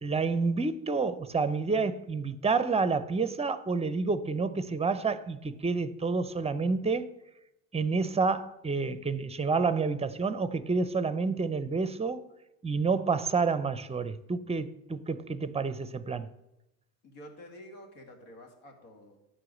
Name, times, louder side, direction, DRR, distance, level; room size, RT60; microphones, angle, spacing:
voice 1, 0.0-7.1 7.7-12.3 12.6-16.3, right 4 dB, 15° right, 0.6 m, -29 dB
voice 2, 17.0-19.2, equal, 80° left, 2.3 m, -49 dB
10.0 x 4.8 x 7.7 m
supercardioid pair, 80°, 47 cm